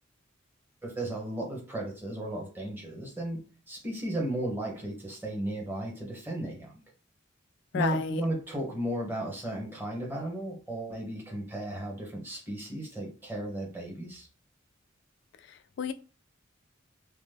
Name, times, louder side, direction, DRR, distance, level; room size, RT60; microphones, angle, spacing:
voice 1, 0.8-6.8 7.7-14.3, right 1 dB, 10° right, 1.0 m, -35 dB
voice 2, 7.7-8.2 15.5-15.9, left 6 dB, 65° left, 0.3 m, -31 dB
2.9 x 2.1 x 3.3 m
head